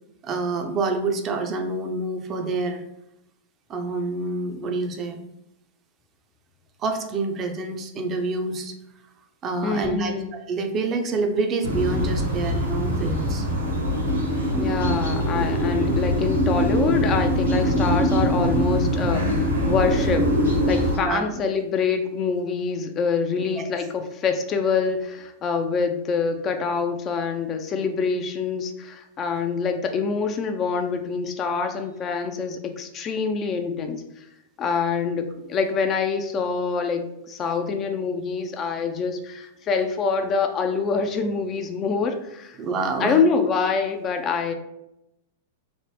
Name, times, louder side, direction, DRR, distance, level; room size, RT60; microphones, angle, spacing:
voice 1, 0.2-2.8 3.7-5.2 6.8-8.7 9.4-13.5 21.0-21.4 23.6-23.7 42.6-43.2, right 3 dB, 30° right, 5 dB, 0.4 m, -27 dB
voice 2, 9.6-10.3 14.6-34.2 34.6-42.6 43.0-44.5, left 5 dB, 30° left, 6 dB, 0.3 m, -25 dB
sound 1, 11.6-21.0, equal, 85° right, 1.1 m, -23 dB
3.1 x 2.0 x 3.1 m, 0.86 s
hypercardioid pair, 100°, 0 cm